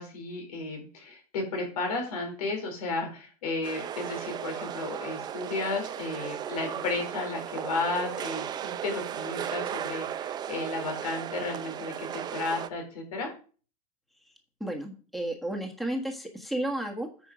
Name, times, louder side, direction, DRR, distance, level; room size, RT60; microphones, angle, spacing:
voice 1, 0.0-13.3, left 3 dB, 85° left, 3 dB, 4.0 m, -33 dB
sound 1, 3.6-12.7, right 10 dB, 20° right, 0.5 m, -36 dB
voice 2, 14.6-17.3, right 1 dB, ahead, 3 dB, 1.4 m, -33 dB
9.2 x 4.9 x 5.0 m, 0.39 s
supercardioid pair, 140°, 19 cm